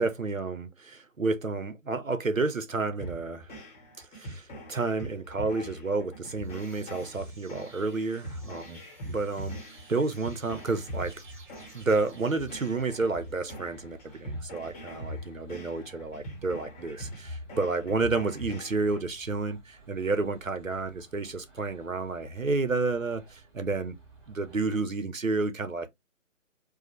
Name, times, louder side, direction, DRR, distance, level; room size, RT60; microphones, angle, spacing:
voice 1, 0.0-3.6 4.0-11.1 11.7-24.0 24.3-25.9, right 3 dB, 85° right, 1.0 m, -30 dB
sound 1, 3.0-19.0, equal, 10° left, 0.9 m, -42 dB
sound 2, 6.2-13.6, right 4 dB, 40° right, 1.3 m, -55 dB
sound 3, 10.5-24.8, right 3 dB, 20° right, 1.3 m, -57 dB
4.8 x 2.2 x 3.1 m
figure-of-eight pair, 145°, 39 cm